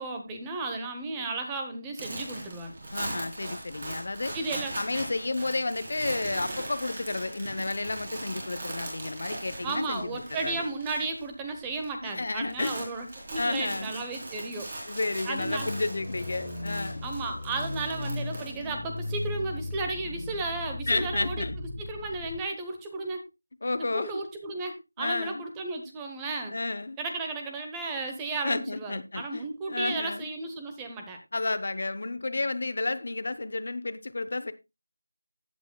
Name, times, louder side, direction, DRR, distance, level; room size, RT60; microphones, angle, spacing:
voice 1, 0.0-2.8 4.3-4.7 9.6-14.7 15.2-15.7 17.0-21.5 21.8-23.2 23.8-26.6 27.0-31.2, right 3 dB, 10° right, 0.9 m, -34 dB
sound 1, 2.0-11.3 11.5-11.9 12.2-19.2, right 1 dB, 30° right, 3.8 m, -40 dB
voice 2, 2.9-4.3 4.8-10.6 12.0-12.9 13.3-13.9 14.9-17.0 20.9-21.6 23.6-24.2 25.0-25.4 26.5-27.0 28.4-30.3 31.3-34.5, left 2 dB, 45° left, 0.7 m, -31 dB
sound 2, 15.4-22.4, left 2 dB, 30° left, 1.2 m, -36 dB
15.5 x 8.2 x 2.2 m
figure-of-eight pair, 175°, 0 cm